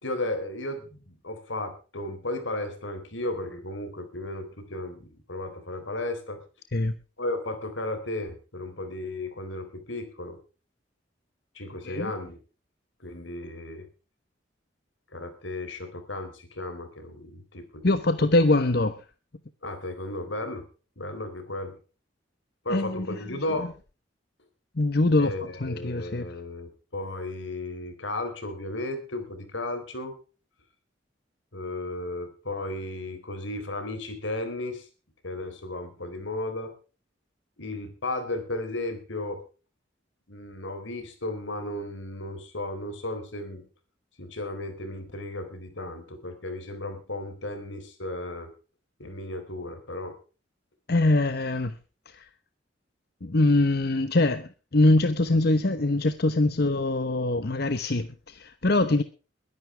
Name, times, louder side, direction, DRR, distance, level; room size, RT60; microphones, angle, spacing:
voice 1, 0.0-6.4 7.2-10.4 11.5-12.4 13.0-13.9 15.1-17.9 19.6-20.7 21.0-21.7 22.6-23.7 25.2-30.2 31.5-34.9 35.2-36.7 37.6-39.4 40.3-43.6 44.2-48.5 49.0-50.2, left 2 dB, 80° left, 4.0 m, -34 dB
voice 2, 17.8-19.0 22.7-23.2 23.6-23.7 24.8-25.3 25.6-26.3 50.9-51.8 52.1-52.3 53.2-59.0, left 2 dB, 55° left, 1.0 m, -23 dB
22.5 x 11.0 x 3.4 m
head